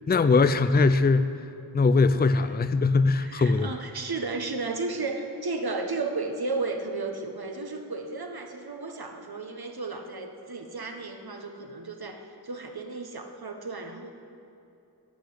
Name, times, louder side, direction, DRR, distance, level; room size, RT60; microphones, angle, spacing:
voice 1, 0.1-1.4 1.7-3.7, left 3 dB, 25° left, 12 dB, 0.4 m, -21 dB
voice 2, 3.2-14.1, right 3 dB, 65° right, 4 dB, 1.3 m, -34 dB
11.5 x 7.9 x 8.6 m, 2.7 s
wide cardioid pair, 65°, 41 cm